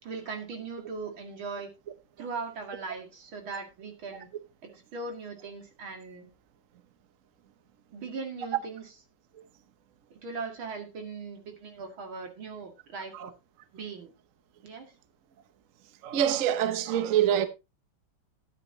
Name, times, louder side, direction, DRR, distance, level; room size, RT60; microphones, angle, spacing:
voice 1, 0.0-1.7 2.2-4.3 4.6-6.3 7.9-8.9 10.1-13.3 13.7-14.1 14.6-14.9, right 4 dB, 85° right, 2.9 m, -39 dB
voice 2, 16.0-17.5, right 10 dB, 50° right, 1.1 m, -25 dB
12.5 x 9.9 x 2.8 m
omnidirectional pair, 2.2 m